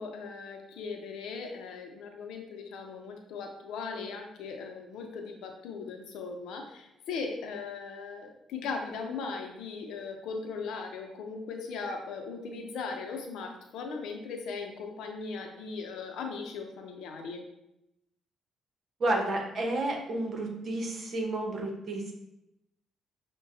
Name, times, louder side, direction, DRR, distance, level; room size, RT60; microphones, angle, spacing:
voice 1, 0.0-17.4, left 4 dB, 85° left, 3 dB, 0.6 m, -38 dB
voice 2, 19.0-22.1, right 2 dB, 50° right, 1 dB, 0.9 m, -31 dB
6.3 x 2.2 x 2.6 m, 0.86 s
cardioid pair, 90°, 0 cm